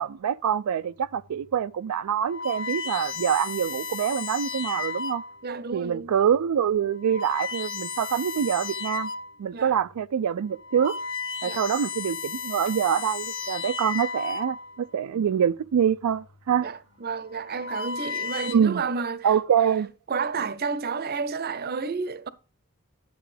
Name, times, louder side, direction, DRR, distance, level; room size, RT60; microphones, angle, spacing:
voice 1, 0.0-5.2 5.7-9.1 9.4-11.0 11.4-16.7 18.5-18.8 19.2-19.9, right 8 dB, 80° right, 0.4 m, -25 dB
sound 1, 1.2-1.4 2.1-5.5 6.1-6.4 6.9-9.4 9.8-10.0 10.5-14.9 15.9-16.3 17.2-18.5, left 5 dB, 55° left, 0.8 m, -34 dB
voice 2, 5.4-6.1 9.5-9.8 11.4-11.6 16.6-19.3 20.1-22.3, right 4 dB, 45° right, 0.6 m, -31 dB
11.0 x 7.5 x 3.3 m
head